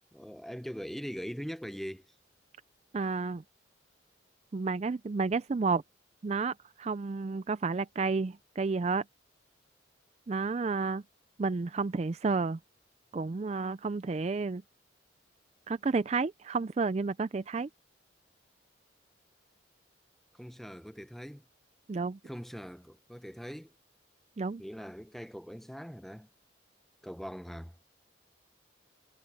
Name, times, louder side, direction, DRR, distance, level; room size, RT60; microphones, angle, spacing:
voice 1, 0.1-2.1 20.3-21.4 22.2-23.7 24.6-26.3 27.0-27.7, equal, ahead, 0.6 m, -41 dB
voice 2, 2.9-3.4 4.5-5.8 6.2-9.0 10.3-11.0 11.4-12.6 13.1-14.6 15.7-17.7 21.9-22.2 24.4-24.6, right 4 dB, 35° right, 0.3 m, -31 dB
head